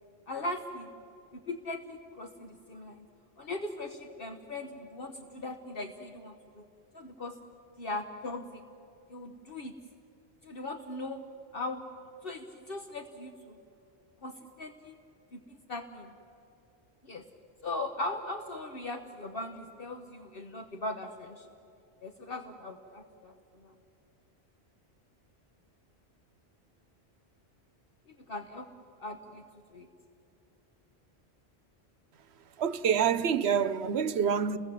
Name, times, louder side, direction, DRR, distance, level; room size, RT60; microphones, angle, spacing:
voice 1, 0.3-0.9 1.3-3.0 3.4-6.6 6.9-7.4 7.8-8.6 9.1-9.7 10.4-11.2 11.5-11.8 12.2-13.6 14.2-15.0 15.3-16.1 17.0-17.3 17.6-21.5 22.0-23.7 28.1-28.7 29.0-29.4 29.7-29.9, left 2 dB, 60° left, 1.2 m, -39 dB
voice 2, 32.6-34.6, right 7 dB, 80° right, 1.0 m, -27 dB
29.5 x 21.0 x 7.6 m
omnidirectional pair, 1.1 m